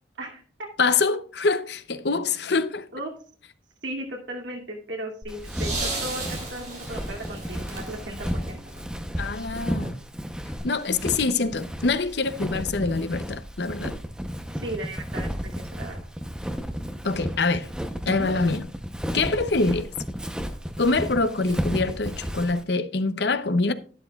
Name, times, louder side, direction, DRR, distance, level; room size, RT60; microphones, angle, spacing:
voice 1, 0.2-0.7 2.9-3.1 3.8-8.6 14.5-16.0 18.0-18.3, right 1 dB, 80° right, 2.5 m, -36 dB
voice 2, 0.8-2.9 9.2-9.9 10.6-14.0 17.0-17.7 18.1-18.6 19.1-19.9 20.8-23.7, left 3 dB, 65° left, 0.7 m, -25 dB
sound 1, 5.2-9.4 10.6-10.7, right 2 dB, 40° right, 3.4 m, -35 dB
Walk footsteps, 5.3-22.6, equal, 5° right, 0.8 m, -33 dB
11.5 x 11.0 x 2.4 m
head